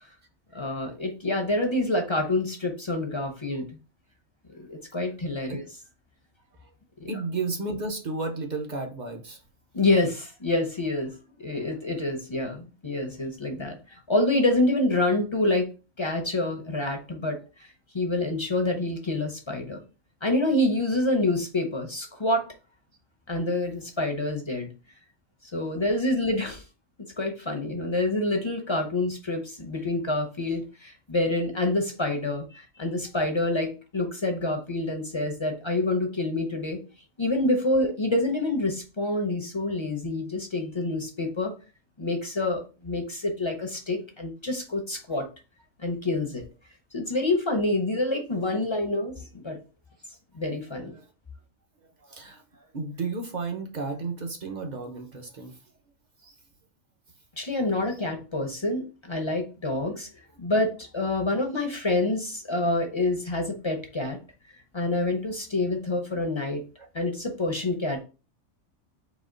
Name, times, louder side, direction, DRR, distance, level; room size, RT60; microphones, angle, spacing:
voice 1, 0.5-3.6 4.5-5.7 7.0-7.1 9.7-11.1 11.4-15.7 16.0-17.7 17.9-19.8 20.2-22.5 23.3-24.7 25.5-26.6 27.2-36.8 37.2-41.5 42.0-45.2 45.8-46.4 46.9-49.6 50.3-51.0 57.4-60.1 60.4-64.2 64.7-66.6 66.9-68.0, left 2 dB, 30° left, 4 dB, 0.5 m, -27 dB
voice 2, 7.1-9.4 50.9-51.1 52.0-55.6 56.2-56.4 57.9-58.0 66.8-66.9, right 3 dB, 45° right, 4 dB, 0.6 m, -33 dB
4.2 x 2.8 x 3.8 m, 0.33 s
omnidirectional pair, 1.4 m